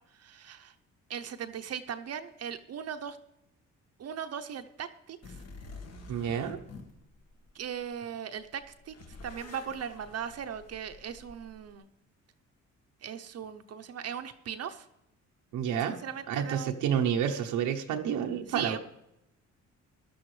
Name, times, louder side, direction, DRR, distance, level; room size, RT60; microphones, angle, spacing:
voice 1, 0.1-0.7 1.1-3.2 4.0-5.2 7.5-8.9 9.2-11.9 13.0-14.9 15.9-16.7 18.5-18.8, right 8 dB, 55° right, 8 dB, 0.7 m, -38 dB
sound 1, 5.2-8.0 8.4-11.7, left 3 dB, 55° left, 1.7 m, -48 dB
voice 2, 6.1-6.6 15.5-18.8, right 8 dB, 90° right, 3 dB, 0.9 m, -30 dB
15.5 x 11.5 x 3.2 m, 0.85 s
cardioid pair, 90°, 30 cm